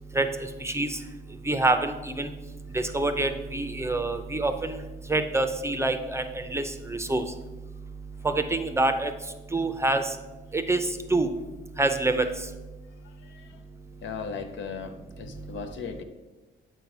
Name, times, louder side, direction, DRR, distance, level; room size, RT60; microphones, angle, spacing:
voice 1, 1.5-2.3 2.9-4.7 5.1-6.2 6.5-6.6 6.9-7.2 8.2-9.1 9.5-10.0 10.5-11.3 11.8-12.2, right 2 dB, 15° right, 8 dB, 0.6 m, -25 dB
voice 2, 14.0-16.0, left 5 dB, 70° left, 7 dB, 0.8 m, -36 dB
7.4 x 4.5 x 5.3 m, 1.2 s
cardioid pair, 90°, 20 cm